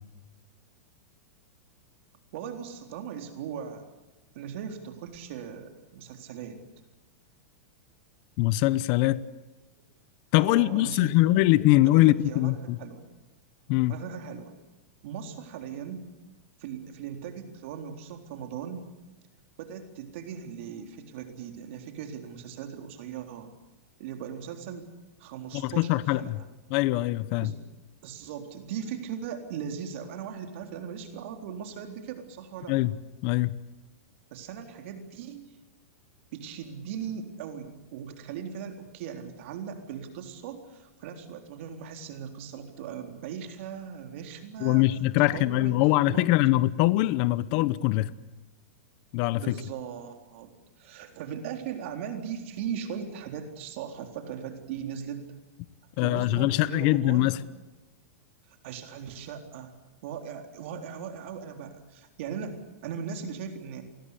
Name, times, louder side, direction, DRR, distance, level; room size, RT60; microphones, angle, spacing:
voice 1, 2.3-3.9 4.3-6.6 10.4-11.4 11.8-13.0 13.9-14.5 15.0-16.1 16.6-18.9 19.6-23.5 24.0-24.9 25.2-26.3 27.4-27.6 28.0-32.7 34.3-35.5 36.3-44.8 45.2-45.8 46.1-46.3 49.4-55.3 56.0-57.3 58.5-59.7 60.0-63.8, right 7 dB, 55° right, 3.8 m, -39 dB
voice 2, 8.4-9.2 10.3-12.8 13.7-13.9 25.5-26.4 26.7-27.5 32.7-32.9 33.2-33.5 44.6-48.1 49.1-49.5 56.0-57.4, left 17 dB, 45° left, 1.0 m, -23 dB
28.5 x 21.0 x 8.4 m
supercardioid pair, 155°, 8 cm